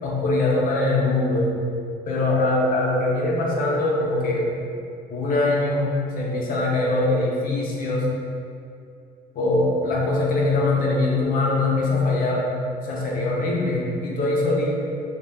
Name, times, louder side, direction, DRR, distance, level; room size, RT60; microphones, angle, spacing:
voice 1, 0.0-1.6 2.1-4.5 5.1-8.1 9.3-12.5 12.9-14.8, left 2 dB, 55° left, -3 dB, 0.6 m, -22 dB
2.2 x 2.0 x 3.3 m, 2.5 s
cardioid pair, 110°, 17 cm